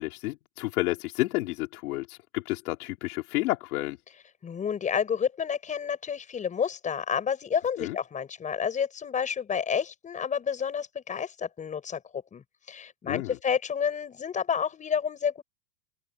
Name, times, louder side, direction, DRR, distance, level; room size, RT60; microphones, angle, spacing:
voice 1, 0.0-4.0 7.8-8.0 13.0-13.4, left 19 dB, 60° left, 3.0 m, -30 dB
voice 2, 4.4-15.4, left 7 dB, 15° left, 6.2 m, -30 dB
supercardioid pair, 170°, 49 cm